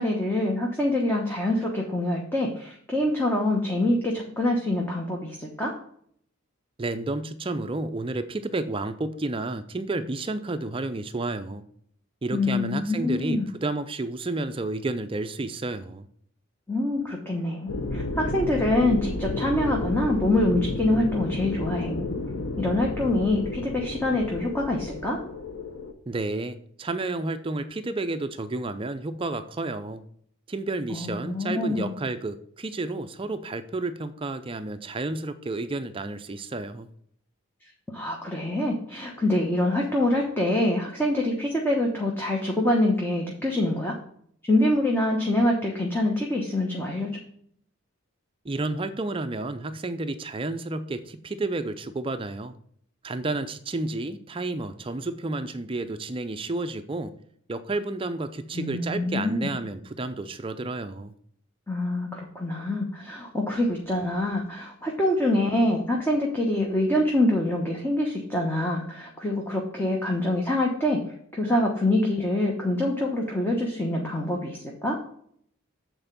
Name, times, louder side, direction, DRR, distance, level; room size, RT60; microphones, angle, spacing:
voice 1, 0.0-5.7 12.3-13.5 16.7-22.1 22.6-25.2 30.9-31.9 37.9-44.0 44.4-47.1 58.5-59.5 61.7-71.0 71.3-75.0, left 1 dB, 10° left, -1 dB, 1.0 m, -25 dB
voice 2, 6.8-11.7 12.2-16.1 26.1-30.0 30.5-36.9 48.4-52.5 53.0-57.1 57.5-61.1, right 2 dB, 25° right, 10 dB, 0.4 m, -31 dB
sound 1, 17.7-25.9, left 2 dB, 70° left, 1.0 m, -31 dB
8.0 x 4.4 x 6.8 m, 0.64 s
head